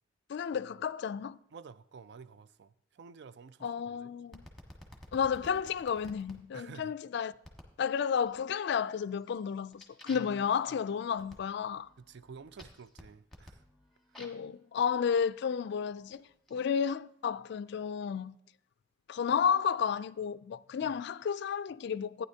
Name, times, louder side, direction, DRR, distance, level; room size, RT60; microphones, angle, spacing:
voice 1, 0.3-1.4 3.6-4.4 5.1-7.3 7.8-11.9 14.2-18.4 19.1-22.3, left 7 dB, 60° left, 0.3 m, -32 dB
voice 2, 1.5-4.1 6.5-6.9 10.1-10.8 12.0-13.6 14.1-14.3 20.8-21.0, right 5 dB, 60° right, 0.4 m, -51 dB
sound 1, 4.3-6.4 7.4-7.8 8.3-8.7 9.1-14.5 15.3-16.5, left 1 dB, ahead, 1.4 m, -54 dB
14.5 x 9.5 x 2.8 m
head